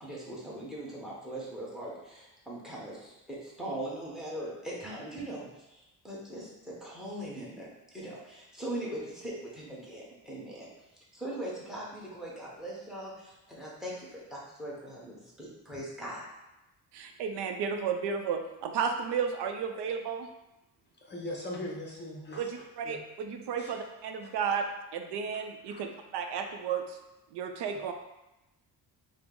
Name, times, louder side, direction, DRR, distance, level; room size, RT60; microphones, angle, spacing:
voice 1, 0.0-7.7 7.9-10.7 11.1-16.2, right 1 dB, ahead, -5 dB, 0.9 m, -40 dB
voice 2, 16.9-20.3 22.4-27.0 27.3-27.9, right 6 dB, 85° right, 5 dB, 0.5 m, -33 dB
voice 3, 21.0-22.4 22.8-23.0 23.6-23.7 25.7-25.8 27.7-27.8, left 1 dB, 25° left, -2 dB, 0.6 m, -40 dB
4.8 x 2.0 x 3.7 m, 0.95 s
cardioid pair, 155°, 40 cm